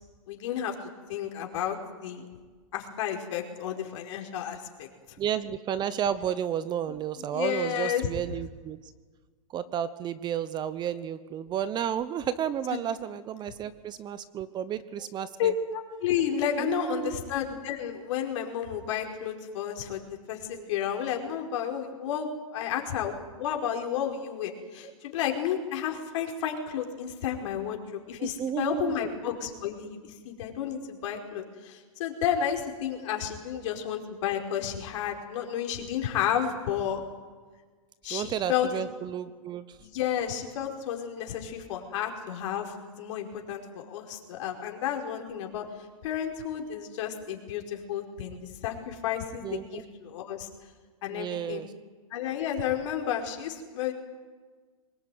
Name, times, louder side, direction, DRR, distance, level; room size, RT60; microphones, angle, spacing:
voice 1, 0.3-1.8 2.0-2.2 2.7-4.9 7.3-8.1 12.7-12.8 15.4-30.0 30.2-37.0 38.0-38.8 39.8-45.6 46.0-50.5 51.0-51.6 52.1-53.9, left 9 dB, 60° left, 3 dB, 4.9 m, -31 dB
voice 2, 5.2-8.8 9.5-15.5 16.6-17.2 20.5-20.6 28.2-29.0 38.1-39.6 49.4-49.8 51.1-51.7, right 9 dB, 25° right, 15 dB, 0.9 m, -32 dB
23.5 x 20.5 x 9.3 m, 1.4 s
hypercardioid pair, 135°, 18 cm